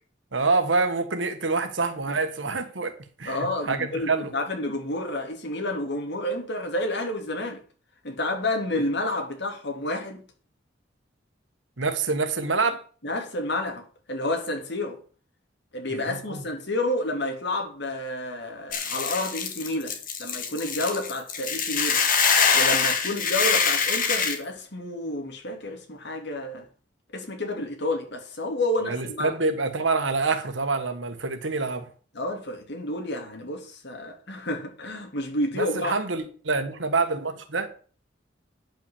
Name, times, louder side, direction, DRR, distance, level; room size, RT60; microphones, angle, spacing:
voice 1, 0.3-2.9 3.2-4.3 11.8-12.8 15.9-16.4 28.8-31.9 35.6-37.7, right 3 dB, 85° right, 1.6 m, -26 dB
voice 2, 3.2-7.6 8.0-10.2 13.0-15.0 15.7-22.0 22.5-26.6 27.1-29.3 32.1-35.9, left 1 dB, 65° left, 3.0 m, -30 dB
Hiss / Boiling, 18.7-24.3, left 6 dB, 45° left, 2.2 m, -24 dB
10.5 x 6.0 x 7.1 m
head